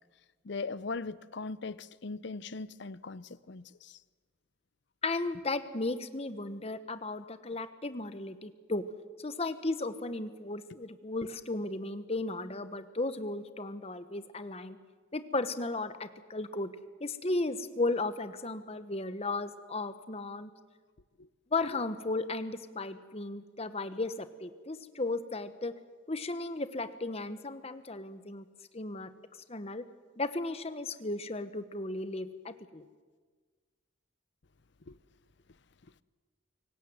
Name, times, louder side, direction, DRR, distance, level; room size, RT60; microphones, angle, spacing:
voice 1, 0.4-4.0 21.2-21.3 34.9-35.0, left 3 dB, 55° left, 0.7 m, -40 dB
voice 2, 5.0-8.8 9.2-14.8 15.1-16.7 17.0-20.5 21.5-25.7 26.1-28.5 28.7-29.1 29.5-29.8 30.2-32.8, left 2 dB, 30° left, 1.1 m, -35 dB
24.5 x 18.5 x 7.9 m
head